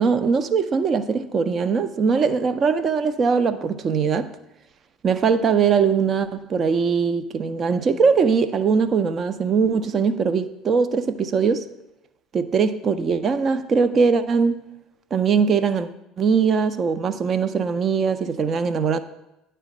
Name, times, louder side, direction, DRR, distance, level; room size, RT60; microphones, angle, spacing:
voice 1, 0.0-4.3 5.0-11.7 12.3-14.6 15.1-15.9 16.2-19.0, right 5 dB, 40° right, 0.5 m, -21 dB
9.6 x 3.4 x 6.2 m
hypercardioid pair, 65°, 0 cm